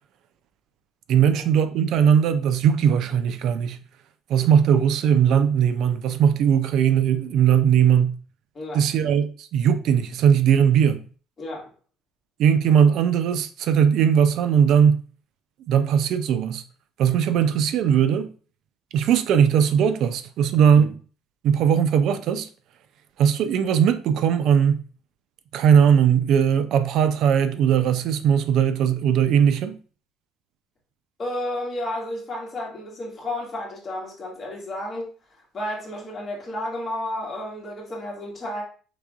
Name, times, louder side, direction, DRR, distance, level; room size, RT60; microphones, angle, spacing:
voice 1, 1.1-3.8 4.3-8.2 8.7-11.0 12.4-15.0 15.7-16.6 17.0-18.3 18.9-21.0 21.4-22.5 23.2-24.8 25.5-29.8, right 8 dB, 60° right, 0.3 m, -19 dB
voice 2, 31.2-35.1 35.5-38.6, left 1 dB, 30° left, 1.6 m, -32 dB
4.8 x 3.5 x 2.3 m
cardioid pair, 140°, 0 cm